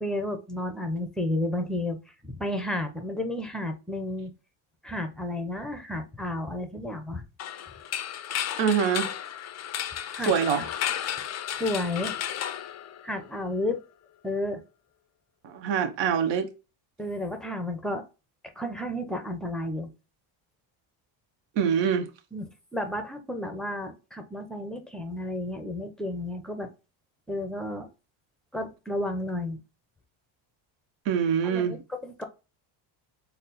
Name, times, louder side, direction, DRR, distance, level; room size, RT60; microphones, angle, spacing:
voice 1, 0.0-2.0 2.2-4.3 4.8-7.2 10.1-10.6 11.5-12.2 13.0-13.8 14.2-14.6 17.0-18.1 18.6-19.9 22.3-26.7 27.3-27.9 28.5-29.6 31.4-31.8 32.0-32.2, left 1 dB, ahead, 0.6 m, -32 dB
sound 1, 7.4-13.4, left 10 dB, 35° left, 0.4 m, -33 dB
voice 2, 8.6-9.1 10.3-10.7 15.4-16.5 21.6-22.1 31.1-31.8, right 7 dB, 60° right, 0.8 m, -24 dB
4.1 x 2.1 x 3.8 m
cardioid pair, 95°, 49 cm